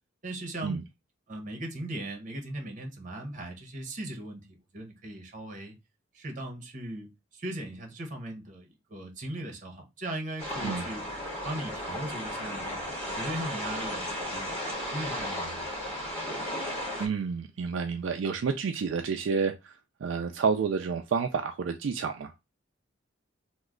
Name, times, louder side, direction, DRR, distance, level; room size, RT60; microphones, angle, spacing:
voice 1, 0.2-0.8 1.3-5.7 6.1-11.0 11.4-14.5 14.9-15.7, right 1 dB, 40° right, 1.0 m, -38 dB
sound 1, 10.4-17.1, equal, 10° left, 1.9 m, -35 dB
voice 2, 17.0-19.7 20.0-22.3, right 5 dB, 70° right, 0.4 m, -29 dB
3.1 x 2.2 x 3.6 m
head